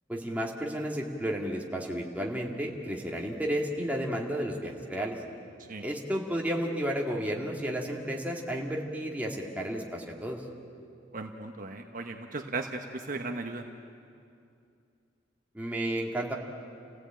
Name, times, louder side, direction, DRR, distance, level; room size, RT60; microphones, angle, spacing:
voice 1, 0.1-5.2 5.8-10.4 15.5-16.3, equal, 10° right, -1 dB, 2.4 m, -32 dB
voice 2, 11.1-13.7, right 3 dB, 45° right, 4 dB, 1.1 m, -36 dB
29.5 x 16.5 x 8.9 m, 2.5 s
head